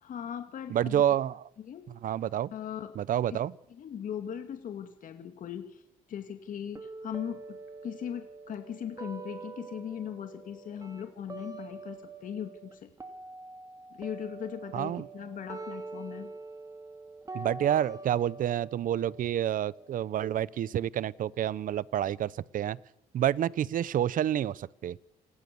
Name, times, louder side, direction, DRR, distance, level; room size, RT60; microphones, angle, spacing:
voice 1, 0.0-1.0 1.6-1.9 2.5-2.9 3.3-3.4 3.7-5.8 6.1-7.6 7.8-12.9 13.9-16.3, left 9 dB, 50° left, 6 dB, 2.6 m, -39 dB
voice 2, 0.7-1.4 2.0-2.5 3.0-3.5 14.7-15.1 17.3-22.8 23.1-25.0, right 11 dB, 55° right, 21 dB, 0.8 m, -29 dB
sound 1, 6.7-12.7 13.0-20.8, right 3 dB, 20° right, 2.8 m, -45 dB
28.0 x 21.0 x 7.1 m, 0.81 s
cardioid pair, 110°, 17 cm